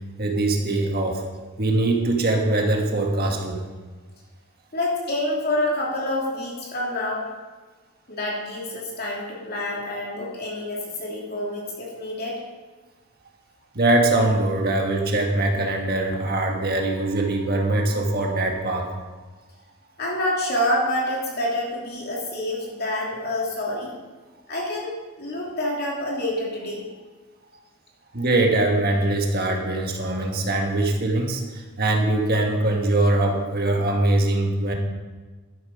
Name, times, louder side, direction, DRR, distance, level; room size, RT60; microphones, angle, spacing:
voice 1, 0.2-1.2 1.6-3.6 13.7-19.0 28.1-34.7, right 2 dB, 45° right, 1 dB, 1.5 m, -22 dB
voice 2, 4.7-7.3 8.1-12.4 20.0-23.9 24.5-26.8, left 1 dB, 45° left, -3 dB, 2.8 m, -27 dB
12.0 x 7.3 x 5.3 m, 1.3 s
head